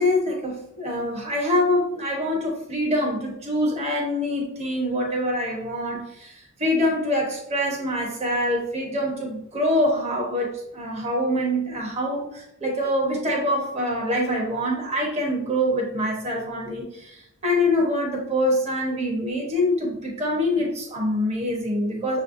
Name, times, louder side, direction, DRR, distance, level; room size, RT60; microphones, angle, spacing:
voice 1, 0.0-22.2, left 1 dB, 30° right, -1 dB, 1.1 m, -25 dB
6.2 x 3.2 x 2.6 m, 0.78 s
head